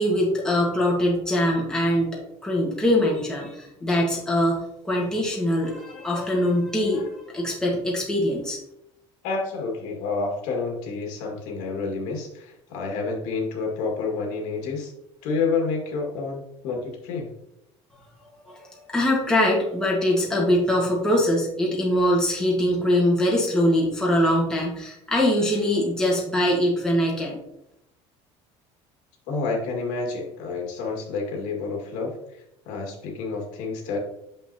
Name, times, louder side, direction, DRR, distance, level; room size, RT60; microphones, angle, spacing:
voice 1, 0.0-8.6 18.5-27.4, left 1 dB, 5° left, -3 dB, 1.5 m, -23 dB
voice 2, 5.9-6.3 6.9-7.0 9.2-14.9 15.2-17.3 29.3-32.1 32.7-34.0, left 4 dB, 75° left, 0 dB, 1.9 m, -29 dB
6.9 x 5.6 x 2.8 m, 0.83 s
cardioid pair, 160°, 13 cm